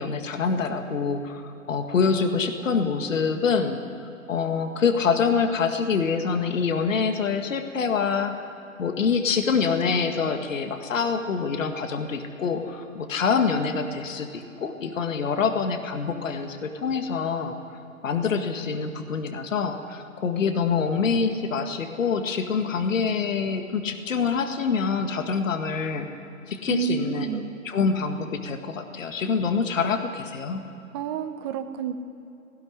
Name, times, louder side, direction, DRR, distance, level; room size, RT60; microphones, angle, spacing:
voice 1, 0.0-3.8 4.3-8.4 8.8-17.6 18.0-26.1 26.5-30.6, left 5 dB, 60° left, 6 dB, 2.0 m, -26 dB
voice 2, 26.7-27.5 30.9-31.9, right 8 dB, 20° right, 8 dB, 0.8 m, -29 dB
18.0 x 17.5 x 10.0 m, 2.8 s
hypercardioid pair, 145°, 43 cm